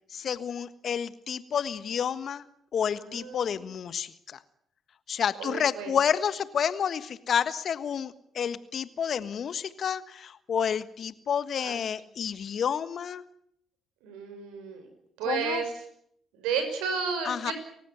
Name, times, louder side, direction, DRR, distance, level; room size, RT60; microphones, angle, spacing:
voice 1, 0.1-2.4 2.7-4.4 5.1-13.2 15.3-15.6 17.2-17.5, left 8 dB, 55° left, 14 dB, 1.4 m, -30 dB
voice 2, 3.0-3.6 5.4-5.9 11.6-11.8 14.0-14.9 15.2-15.7 16.3-17.5, right 6 dB, 75° right, 7 dB, 6.0 m, -32 dB
30.0 x 15.5 x 9.2 m, 0.71 s
hypercardioid pair, 50°, 0 cm